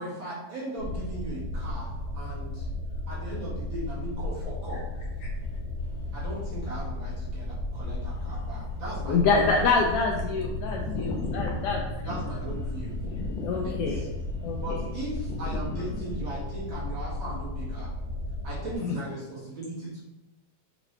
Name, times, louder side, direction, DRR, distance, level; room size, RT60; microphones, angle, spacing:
voice 1, 0.0-2.7 3.1-4.8 6.1-9.7 12.1-13.0 13.5-13.8 14.6-17.9 18.4-20.0, right 1 dB, 45° right, -7 dB, 2.3 m, -38 dB
sound 1, 0.8-18.7, left 2 dB, 65° right, 2.1 m, -34 dB
voice 2, 5.8-6.1 7.7-7.8 8.1-8.6 10.8-12.2 12.7-14.7 15.3-15.9, left 5 dB, 75° left, 0 dB, 1.7 m, -38 dB
voice 3, 9.1-11.8 13.4-14.0 14.4-14.8 18.8-19.0, left 4 dB, 90° left, 0 dB, 1.3 m, -26 dB
6.1 x 5.0 x 3.3 m, 0.98 s
omnidirectional pair, 3.4 m